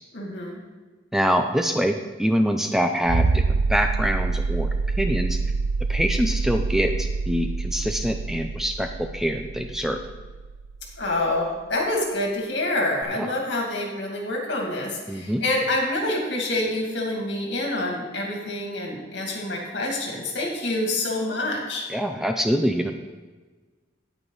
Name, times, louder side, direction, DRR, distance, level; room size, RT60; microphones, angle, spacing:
voice 1, 0.1-0.6 11.0-21.9, left 1 dB, 65° left, 0 dB, 2.3 m, -27 dB
voice 2, 1.1-4.7 5.0-5.4 5.9-10.0 13.1-13.3 15.1-15.4 21.9-22.9, equal, ahead, 5 dB, 0.4 m, -25 dB
sound 1, 3.0-11.5 13.0-13.1, right 4 dB, 65° right, 0.4 m, -26 dB
9.3 x 9.0 x 4.0 m, 1.3 s
head